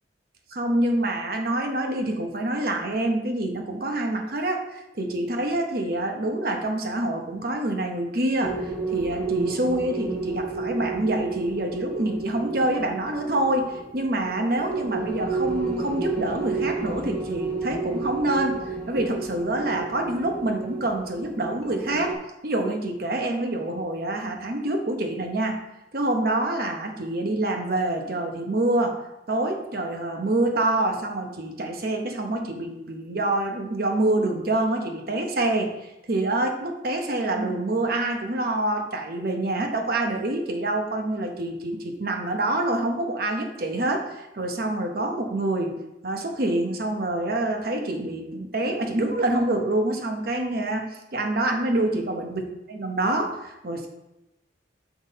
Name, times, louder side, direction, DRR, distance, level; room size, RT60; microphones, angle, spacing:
voice 1, 0.5-22.1 22.4-25.6 25.9-29.0 29.3-52.4 52.8-53.9, right 1 dB, 55° right, 3 dB, 0.9 m, -26 dB
sound 1, 8.4-22.1, right 4 dB, 10° left, 1.1 m, -32 dB
6.0 x 5.6 x 4.1 m, 0.93 s
head